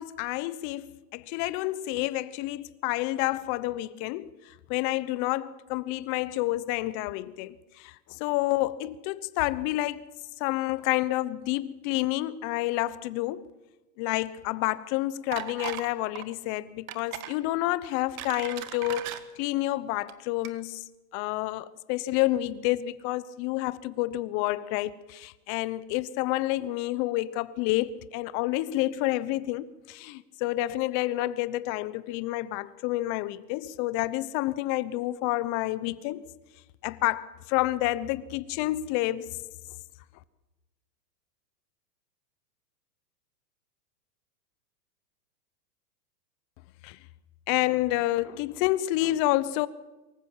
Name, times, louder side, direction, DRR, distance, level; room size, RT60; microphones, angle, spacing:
voice 1, 0.0-4.3 4.7-10.0 10.4-13.4 14.0-20.8 21.1-36.2 36.8-39.4 46.8-47.0 47.5-49.7, left 16 dB, 35° left, 1.0 m, -29 dB
sound 1, 15.3-15.9 16.2-16.4 16.9-17.4 17.9-19.2 20.0-20.1 20.4-20.5, right 13 dB, 60° right, 1.8 m, -37 dB
24.0 x 14.5 x 7.4 m
hypercardioid pair, 135°, 48 cm